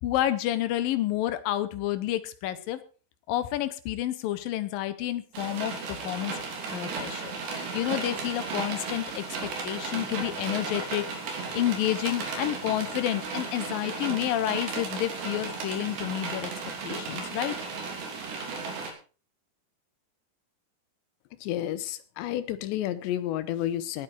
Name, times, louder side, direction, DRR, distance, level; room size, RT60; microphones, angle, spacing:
voice 1, 0.0-2.8 3.3-6.4 6.7-9.2 9.6-16.5 16.8-17.6, left 13 dB, 70° left, 13 dB, 2.3 m, -30 dB
sound 1, 5.3-18.9, right 4 dB, 80° right, 5.4 m, -35 dB
voice 2, 21.4-24.0, left 12 dB, 90° left, 14 dB, 3.3 m, -31 dB
19.5 x 8.9 x 4.6 m, 0.37 s
omnidirectional pair, 4.9 m